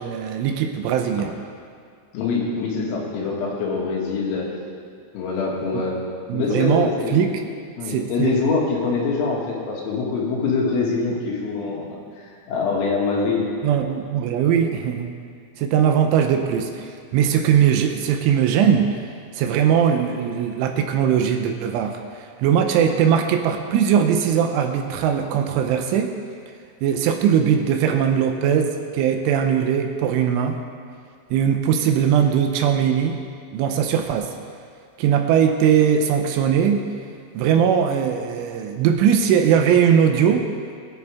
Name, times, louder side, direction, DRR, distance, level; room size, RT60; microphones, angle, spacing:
voice 1, 0.0-1.4 5.7-5.8 6.3-7.3 7.9-8.4 13.6-15.1 15.6-19.0 19.4-26.1 26.8-30.6 31.3-33.2 33.5-34.3 35.0-36.8 37.3-40.5, right 8 dB, 80° right, 5 dB, 3.1 m, -20 dB
voice 2, 2.1-4.5 5.1-6.0 6.3-13.5, left 4 dB, 85° left, -3 dB, 4.9 m, -24 dB
21.5 x 11.0 x 3.6 m, 2.2 s
omnidirectional pair, 5.9 m